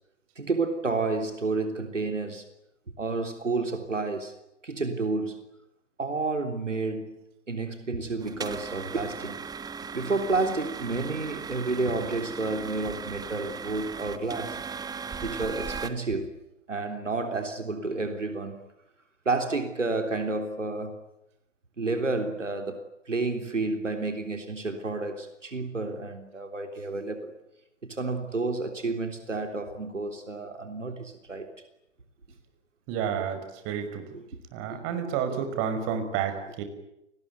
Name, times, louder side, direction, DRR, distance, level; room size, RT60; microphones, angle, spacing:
voice 1, 0.4-2.4 3.0-4.3 4.6-5.4 6.0-7.2 7.5-9.4 9.9-14.6 15.2-16.4 16.7-18.6 19.3-21.0 21.8-27.3 27.8-31.5 34.1-34.2 34.7-34.8, right 3 dB, 85° right, 3.6 m, -30 dB
sound 1, 8.2-15.9, right 5 dB, 10° right, 1.5 m, -38 dB
voice 2, 32.9-34.1 34.5-36.6, right 7 dB, 35° right, 6.0 m, -30 dB
30.0 x 20.5 x 9.5 m
figure-of-eight pair, 115°, 36 cm